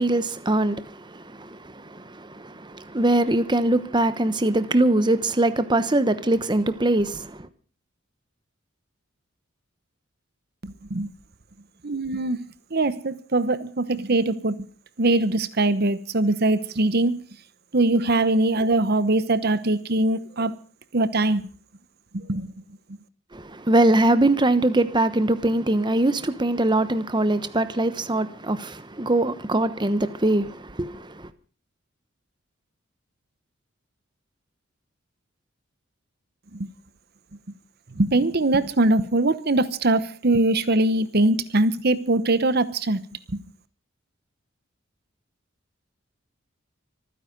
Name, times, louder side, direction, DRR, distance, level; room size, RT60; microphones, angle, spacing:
voice 1, 0.0-7.4 23.3-31.3, right 1 dB, 20° right, 1.0 m, -22 dB
voice 2, 10.6-11.1 11.8-12.4 12.7-14.6 15.0-17.2 17.7-20.5 20.9-21.5 22.1-22.5 36.5-36.7 38.0-43.0, right 2 dB, 50° right, 1.0 m, -22 dB
25.0 x 9.9 x 5.2 m
head